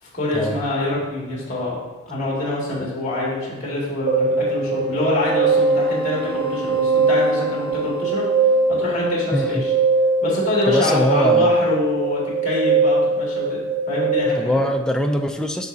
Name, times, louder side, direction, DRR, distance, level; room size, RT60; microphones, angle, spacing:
voice 1, 0.0-1.8 2.1-8.3 8.7-9.7 10.2-14.6, left 2 dB, 35° left, -5 dB, 2.3 m, -25 dB
sound 1, 4.1-14.2, right 4 dB, 25° right, 0.9 m, -20 dB
voice 2, 9.3-9.6 10.7-11.5 14.4-15.7, equal, 5° left, 3 dB, 0.4 m, -22 dB
8.4 x 5.9 x 2.7 m, 1.2 s
head